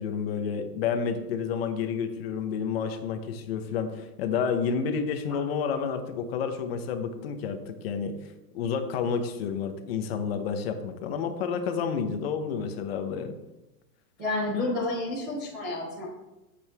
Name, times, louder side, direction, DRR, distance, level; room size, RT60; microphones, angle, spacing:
voice 1, 0.0-8.1 8.5-13.4, left 6 dB, 35° left, 7 dB, 1.1 m, -30 dB
voice 2, 14.2-16.0, left 2 dB, 5° right, -10 dB, 0.4 m, -30 dB
12.5 x 8.1 x 3.6 m, 0.98 s
supercardioid pair, 165°, 50 cm